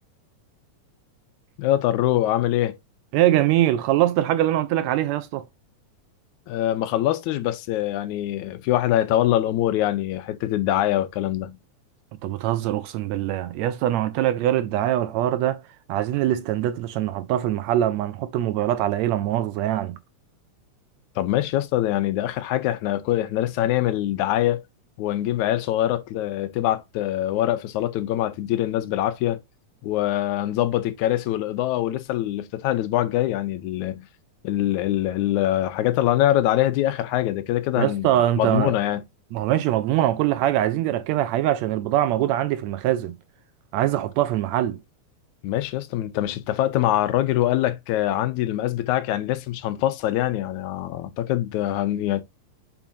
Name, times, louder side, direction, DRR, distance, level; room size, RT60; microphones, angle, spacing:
voice 1, 1.6-2.8 6.5-11.6 21.2-24.6 25.0-29.4 29.8-34.1 34.4-38.1 38.4-39.0 45.4-52.2, left 13 dB, 80° left, 2.1 m, -24 dB
voice 2, 3.1-5.4 12.2-15.6 15.9-20.0 37.8-38.8 39.3-43.2 43.7-44.8, right 13 dB, 75° right, 1.7 m, -23 dB
7.2 x 5.4 x 2.7 m
omnidirectional pair, 3.4 m